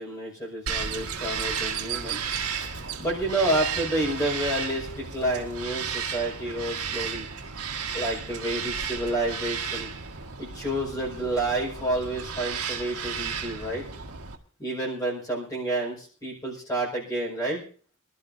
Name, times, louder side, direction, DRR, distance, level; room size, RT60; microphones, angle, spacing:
voice 1, 0.0-2.2 3.0-7.2 7.9-9.9 10.4-13.8 14.6-17.6, right 1 dB, 15° left, -3 dB, 5.0 m, -29 dB
Bird vocalization bird call bird song, 0.7-14.4, right 6 dB, 85° right, 1.6 m, -33 dB
24.5 x 12.5 x 2.7 m, 0.40 s
head